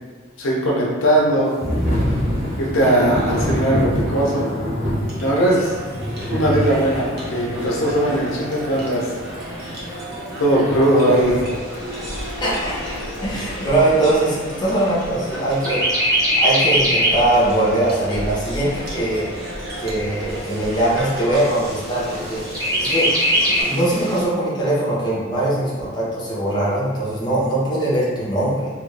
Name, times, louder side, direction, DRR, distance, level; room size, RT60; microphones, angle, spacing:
voice 1, 0.4-1.6 2.6-4.5 5.2-5.8 6.3-7.0 7.3-9.1 10.4-11.4, right 1 dB, 80° left, -3 dB, 0.6 m, -19 dB
Thunder / Rain, 1.6-11.4, equal, 75° right, 1.2 m, -26 dB
sound 1, 4.9-24.3, equal, 50° right, 0.7 m, -33 dB
Chirp tweet, 11.5-15.2 15.6-17.3 17.7-17.8 18.2-19.2 19.8-19.9 20.2-20.3 20.8-21.3 22.5-23.6, equal, 20° right, 0.9 m, -21 dB
voice 2, 12.4-12.7 13.2-16.1 16.4-19.3 19.8-22.4 22.8-23.1 23.6-28.7, right 1 dB, 20° left, -7 dB, 0.8 m, -21 dB
2.9 x 2.5 x 3.2 m, 1.5 s
head